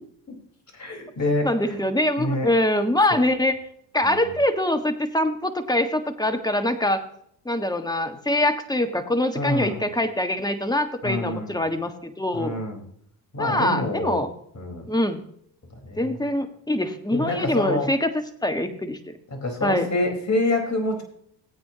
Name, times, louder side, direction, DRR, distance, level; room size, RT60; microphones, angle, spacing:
voice 1, 0.7-1.8 2.2-2.5 4.0-4.2 9.3-9.8 11.0-11.6 12.3-12.8 13.3-14.2 14.6-14.9 15.8-16.2 17.1-17.9 19.4-21.0, left 2 dB, 35° left, 3 dB, 4.5 m, -27 dB
voice 2, 1.4-3.6 3.9-7.0 7.4-12.5 13.4-14.3 14.9-15.2 16.0-19.0 19.6-19.9, left 1 dB, 10° left, 7 dB, 1.6 m, -24 dB
17.0 x 8.6 x 2.9 m, 0.66 s
hypercardioid pair, 60°, 49 cm